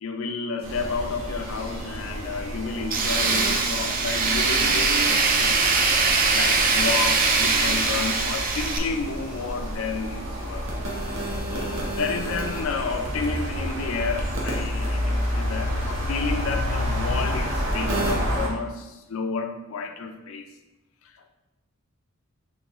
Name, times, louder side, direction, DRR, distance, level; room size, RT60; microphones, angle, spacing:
voice 1, 0.0-5.8 6.3-10.7 11.5-20.5, left 4 dB, 70° left, 7 dB, 0.4 m, -31 dB
sound 1, 0.6-18.5, equal, 65° right, 0.9 m, -29 dB
Tools, 2.9-8.8, right 4 dB, 40° right, 0.4 m, -22 dB
3.7 x 3.4 x 3.0 m, 1.0 s
head